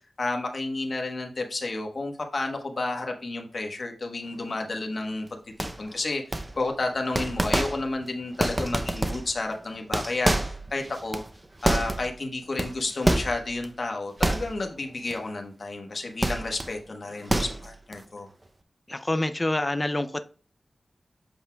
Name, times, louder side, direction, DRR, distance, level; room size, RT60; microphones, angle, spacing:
voice 1, 0.2-11.2 11.6-18.3, left 2 dB, 60° left, 1.4 m, -31 dB
sound 1, 5.6-5.9 6.3-6.8 7.1-8.0 8.3-9.4 9.8-12.2 12.6-13.7 14.2-14.8 15.1-15.3 16.2-16.7 17.1-17.9, right 1 dB, 25° right, 0.6 m, -27 dB
voice 2, 18.9-20.2, left 1 dB, 25° left, 0.5 m, -27 dB
8.1 x 5.4 x 2.3 m
wide cardioid pair, 65°, 0 cm